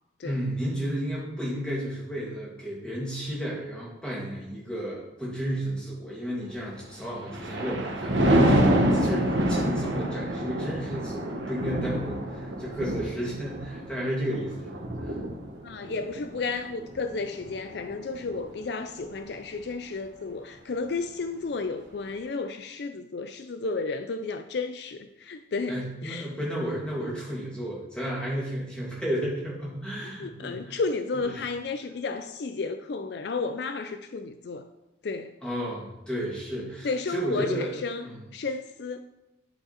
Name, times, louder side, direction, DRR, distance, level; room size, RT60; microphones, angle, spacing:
voice 1, 0.2-15.2 25.7-30.8 31.2-31.4 35.4-37.7 38.0-38.2, equal, 5° left, -6 dB, 2.5 m, -32 dB
Thunder, 7.0-18.5 18.9-19.3, right 1 dB, 80° right, 1.2 m, -27 dB
voice 2, 15.6-26.3 30.0-34.7 35.0-35.3 36.8-38.1 38.3-39.0, left 3 dB, 65° left, 9 dB, 0.4 m, -32 dB
10.0 x 5.2 x 4.2 m, 0.92 s
head